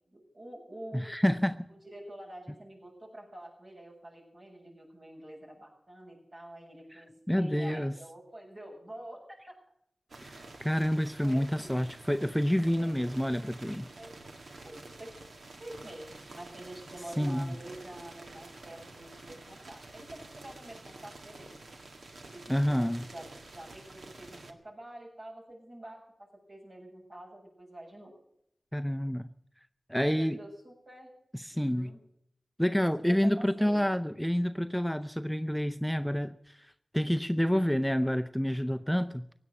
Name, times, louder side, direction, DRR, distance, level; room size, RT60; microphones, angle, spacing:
voice 1, 0.1-1.1 1.8-9.5 11.2-11.8 12.7-13.0 14.0-14.2 14.6-15.1 15.6-21.6 22.2-28.2 30.0-31.1 31.5-32.0 33.0-33.9, right 1 dB, 55° right, 7.6 m, -47 dB
voice 2, 0.9-1.7 6.9-7.0 7.3-7.9 10.2-13.9 17.2-17.5 22.5-23.0 28.7-29.3 29.9-30.4 31.3-31.9 32.6-39.3, equal, ahead, 0.5 m, -28 dB
sound 1, 10.1-24.5, right 2 dB, 80° right, 1.7 m, -49 dB
16.5 x 9.9 x 8.0 m
wide cardioid pair, 70°, 0 cm